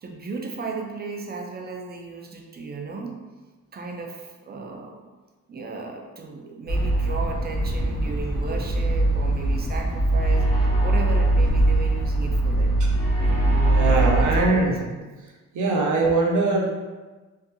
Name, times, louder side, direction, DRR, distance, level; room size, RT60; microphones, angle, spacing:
voice 1, 0.0-3.2 3.7-5.0 5.5-12.8 13.2-15.0, right 4 dB, 35° right, 2 dB, 0.4 m, -35 dB
sound 1, 6.7-14.5, right 1 dB, 50° left, 0.9 m, -21 dB
voice 2, 13.6-14.8 15.5-16.7, right 3 dB, 75° right, -1 dB, 0.6 m, -22 dB
2.7 x 2.3 x 2.6 m, 1.3 s
cardioid pair, 95°, 30 cm